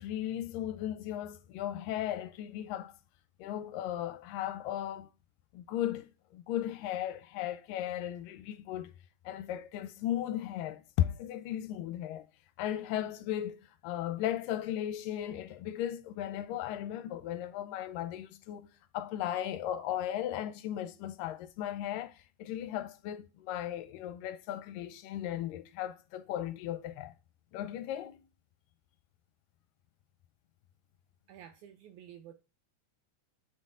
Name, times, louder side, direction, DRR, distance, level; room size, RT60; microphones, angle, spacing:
voice 1, 0.0-2.9 3.4-5.1 5.5-8.9 9.3-12.3 12.6-18.7 18.9-27.1 27.5-28.2, left 12 dB, 85° left, 2.2 m, -36 dB
voice 2, 31.3-32.3, right 10 dB, 85° right, 1.7 m, -51 dB
8.0 x 4.2 x 3.7 m
omnidirectional pair, 4.0 m